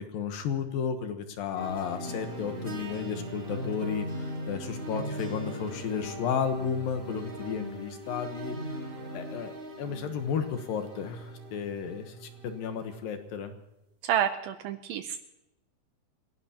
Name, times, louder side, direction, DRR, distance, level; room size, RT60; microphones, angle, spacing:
voice 1, 0.0-8.6 9.1-9.5 9.8-13.5, left 7 dB, 65° left, 7 dB, 2.6 m, -33 dB
sound 1, 1.6-13.0, right 1 dB, 20° right, 4.8 m, -39 dB
voice 2, 14.0-15.2, right 10 dB, 75° right, 9 dB, 2.2 m, -29 dB
28.5 x 17.0 x 2.9 m, 0.91 s
omnidirectional pair, 4.8 m